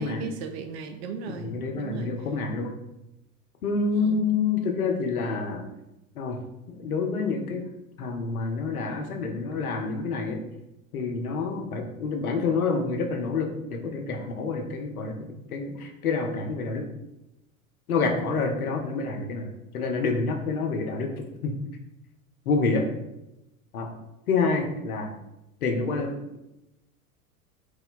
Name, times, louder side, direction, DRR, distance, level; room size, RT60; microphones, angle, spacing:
voice 1, 0.0-2.1 3.9-4.3, right 6 dB, 45° right, 6 dB, 0.5 m, -37 dB
voice 2, 1.3-2.7 3.6-5.6 6.2-6.4 6.8-7.6 8.0-10.4 10.9-15.1 15.5-16.8 17.9-19.5 19.7-21.1 21.4-21.5 22.5-22.8 23.7-23.9 24.3-25.1 25.6-26.1, left 4 dB, 75° left, 3 dB, 0.7 m, -27 dB
3.0 x 2.2 x 3.7 m, 0.90 s
figure-of-eight pair, 85°, 44 cm